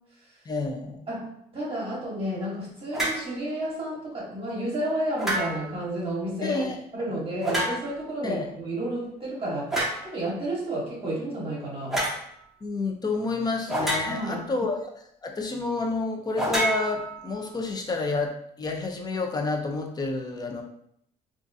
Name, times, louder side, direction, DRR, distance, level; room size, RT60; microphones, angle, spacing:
voice 1, 0.5-1.0 6.4-6.8 8.2-8.5 12.6-20.6, left 3 dB, 25° left, 3 dB, 0.5 m, -29 dB
voice 2, 1.1-12.0 14.0-14.5, right 1 dB, 35° right, -5 dB, 1.0 m, -31 dB
sound 1, 2.9-3.3 5.2-5.8 7.4-8.1 9.7-10.1 11.9-12.2 13.7-14.4 16.4-17.5, right 1 dB, ahead, 0.9 m, -28 dB
3.6 x 2.5 x 2.6 m, 0.72 s
cardioid pair, 110°, 17 cm